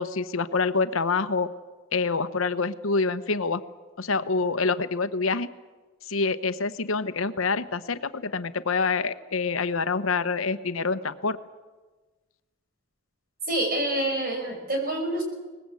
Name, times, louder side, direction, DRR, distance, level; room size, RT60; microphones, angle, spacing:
voice 1, 0.0-1.5 1.9-3.6 4.0-5.5 6.1-11.4, left 4 dB, 80° left, 12 dB, 1.0 m, -26 dB
voice 2, 13.5-15.2, right 1 dB, 45° right, 3 dB, 6.2 m, -27 dB
23.0 x 20.0 x 8.4 m, 1.3 s
head